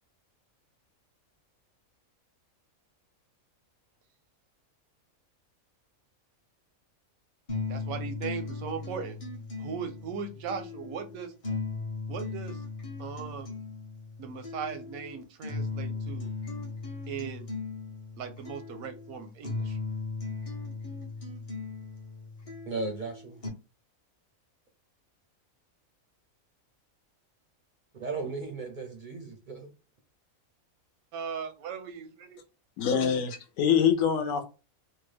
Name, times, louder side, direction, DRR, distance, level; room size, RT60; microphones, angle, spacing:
sound 1, 7.5-23.5, left 3 dB, 35° left, 0.6 m, -37 dB
voice 1, 7.6-9.2 9.6-11.3 12.1-12.6 13.0-13.5 14.2-16.3 17.1-17.5 18.2-19.8 31.1-32.4, right 6 dB, 85° right, 8 dB, 1.1 m, -38 dB
voice 2, 22.7-23.4 27.9-29.7, right 3 dB, 55° right, 3 dB, 0.5 m, -36 dB
voice 3, 32.8-34.4, left 7 dB, 75° left, 7 dB, 1.0 m, -25 dB
2.9 x 2.2 x 3.2 m, 0.31 s
omnidirectional pair, 1.5 m